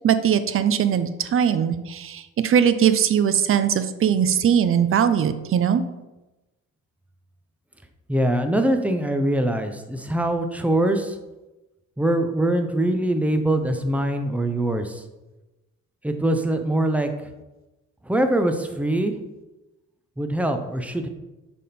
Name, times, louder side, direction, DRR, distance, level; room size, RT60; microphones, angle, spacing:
voice 1, 0.0-5.8, right 8 dB, 45° right, 11 dB, 0.5 m, -20 dB
voice 2, 8.1-11.2 12.0-15.0 16.0-17.1 18.1-19.1 20.2-21.1, right 1 dB, 5° right, 6 dB, 0.7 m, -23 dB
6.3 x 3.6 x 4.2 m, 1.0 s
cardioid pair, 90°, 30 cm